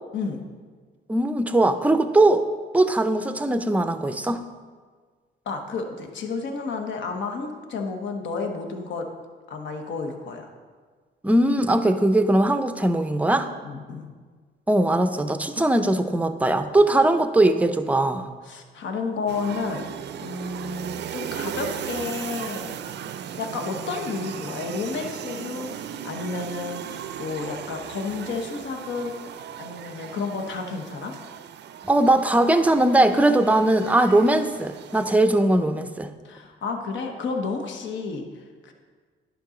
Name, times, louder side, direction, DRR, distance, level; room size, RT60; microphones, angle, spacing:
voice 1, 1.1-2.4 2.7-4.5 11.2-13.5 14.7-18.3 31.9-36.1, right 1 dB, 5° right, 9 dB, 0.5 m, -20 dB
voice 2, 5.5-9.1 9.5-10.5 13.6-14.1 18.4-19.9 20.2-22.8 23.4-29.1 29.6-31.1 36.2-38.7, left 4 dB, 70° left, 4 dB, 1.0 m, -31 dB
sound 1, 19.3-35.2, right 9 dB, 60° right, 0.4 m, -37 dB
10.5 x 5.4 x 3.8 m, 1.5 s
cardioid pair, 90°, 20 cm